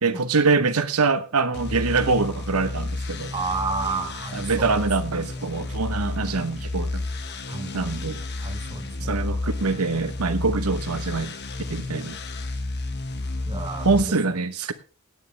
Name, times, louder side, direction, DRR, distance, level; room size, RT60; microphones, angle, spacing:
voice 1, 0.0-3.4 4.3-7.1 7.7-8.2 9.0-11.3 11.7-12.2 13.8-14.7, right 4 dB, 85° right, 1.0 m, -24 dB
sound 1, 1.5-14.0, left 2 dB, 50° left, 1.2 m, -31 dB
voice 2, 3.3-4.7 7.5-8.0 8.4-9.2 13.5-14.1, right 4 dB, 20° right, 1.0 m, -31 dB
17.0 x 9.3 x 3.3 m
head